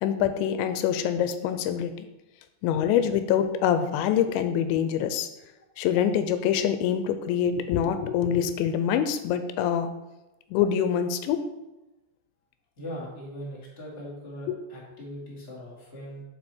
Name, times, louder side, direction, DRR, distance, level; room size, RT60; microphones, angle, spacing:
voice 1, 0.0-2.1 2.6-5.3 5.8-10.0 10.5-11.4 14.5-14.6, left 9 dB, 90° left, 9 dB, 3.0 m, -25 dB
voice 2, 12.8-16.2, equal, 20° left, -6 dB, 2.0 m, -40 dB
11.5 x 4.7 x 4.4 m, 1.0 s
omnidirectional pair, 5.1 m